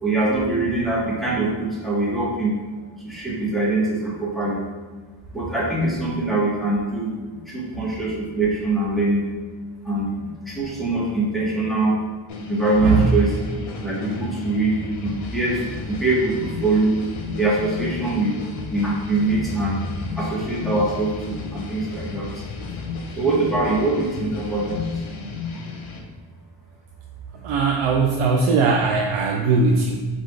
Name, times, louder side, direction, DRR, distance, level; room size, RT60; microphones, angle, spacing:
voice 1, 0.0-2.5 3.0-4.7 5.3-7.1 7.5-9.3 9.8-12.0 12.5-13.4 13.8-14.7 15.0-17.0 17.4-19.8 20.2-22.3 23.2-24.8, right 2 dB, ahead, -6 dB, 0.8 m, -23 dB
sound 1, 12.3-26.0, left 3 dB, 80° left, 0.8 m, -33 dB
voice 2, 27.4-30.0, right 4 dB, 85° right, 1 dB, 0.6 m, -19 dB
4.3 x 2.3 x 4.5 m, 1.4 s
wide cardioid pair, 175°, 48 cm